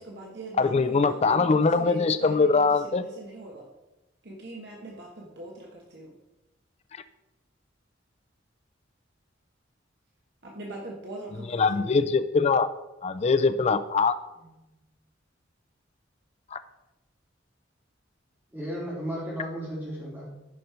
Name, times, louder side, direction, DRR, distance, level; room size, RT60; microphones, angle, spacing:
voice 1, 0.0-3.6 4.2-6.1 10.4-12.0, right 2 dB, 60° right, -2 dB, 1.4 m, -41 dB
voice 2, 0.6-3.0 11.5-12.7 13.0-14.2 16.5-16.6, left 4 dB, 35° left, 11 dB, 0.4 m, -22 dB
voice 3, 18.5-20.3, equal, 10° right, -6 dB, 3.5 m, -34 dB
11.0 x 5.3 x 4.4 m, 0.99 s
head